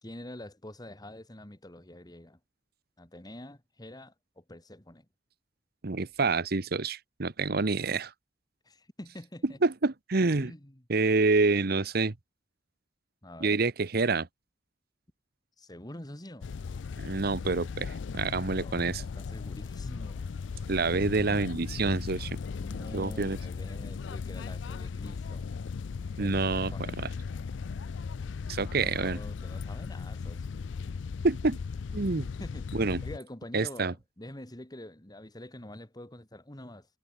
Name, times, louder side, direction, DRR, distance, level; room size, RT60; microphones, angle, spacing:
voice 1, 0.0-2.4 3.0-5.1 8.6-9.6 10.4-10.8 13.2-13.6 15.6-16.5 18.5-20.3 22.6-25.5 26.2-26.3 26.7-27.0 28.8-30.6 32.0-36.9, left 1 dB, 20° left, 2.2 m, -46 dB
voice 2, 5.8-8.1 9.6-10.5 10.9-12.1 13.4-14.3 17.0-19.0 20.7-22.4 22.9-23.4 26.2-26.7 27.0-27.1 28.5-29.2 31.2-31.6 31.9-32.2 32.7-33.0 33.5-33.9, right 3 dB, 55° right, 1.0 m, -27 dB
sound 1, 16.4-33.2, left 5 dB, 80° left, 0.4 m, -37 dB
head